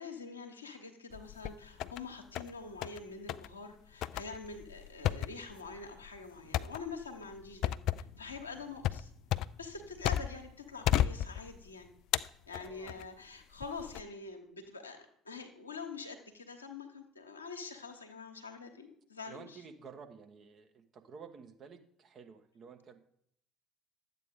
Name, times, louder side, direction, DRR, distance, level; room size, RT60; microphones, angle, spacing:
voice 1, 0.0-7.8 8.2-9.1 9.6-11.9 12.5-19.6, left 4 dB, 80° left, 3 dB, 1.1 m, -45 dB
sound 1, 1.1-2.0 2.3-3.0 3.3-3.5 4.0-10.5 10.8-11.7 12.1-13.1 13.6-14.0, left 12 dB, 55° left, 0.3 m, -34 dB
voice 2, 12.6-13.0 19.3-23.0, right 6 dB, 40° right, 5 dB, 1.1 m, -52 dB
11.5 x 8.2 x 3.7 m, 0.69 s
figure-of-eight pair, 60°, 0 cm